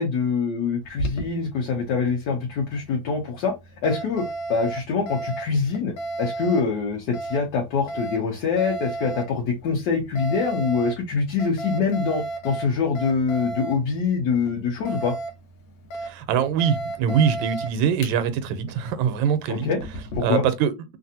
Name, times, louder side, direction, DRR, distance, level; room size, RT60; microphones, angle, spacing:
voice 1, 0.0-3.5 3.8-15.1 19.5-19.8 20.1-20.4, left 5 dB, 65° left, 1.3 m, -24 dB
Alarm, 0.8-20.2, right 2 dB, 85° left, 1.4 m, -35 dB
voice 2, 16.0-19.7 20.2-20.7, right 7 dB, 80° right, 1.3 m, -23 dB
3.3 x 2.5 x 2.7 m
omnidirectional pair, 2.1 m